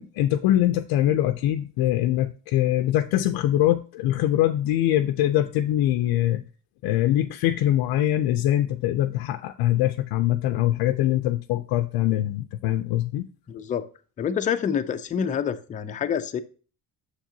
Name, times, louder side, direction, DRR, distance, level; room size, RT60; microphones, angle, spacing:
voice 1, 0.0-6.4 6.8-13.3, left 13 dB, 75° left, 8 dB, 0.5 m, -23 dB
voice 2, 13.5-13.8 14.2-16.4, left 7 dB, 20° left, 9 dB, 0.3 m, -27 dB
7.3 x 6.6 x 2.7 m, 0.37 s
cardioid pair, 160°, 38 cm